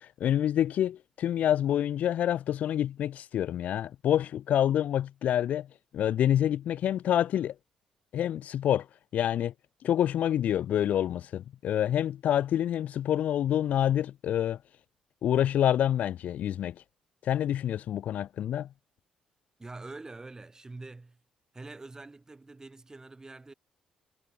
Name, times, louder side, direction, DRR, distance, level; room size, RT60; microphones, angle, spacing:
voice 1, 0.0-5.7 5.9-7.5 8.1-8.9 9.1-9.5 9.8-14.6 15.2-16.7 17.2-18.7, left 10 dB, 65° left, 0.4 m, -27 dB
voice 2, 19.6-21.2 21.5-23.5, right 3 dB, 20° right, 7.2 m, -45 dB
supercardioid pair, 65°, 3 cm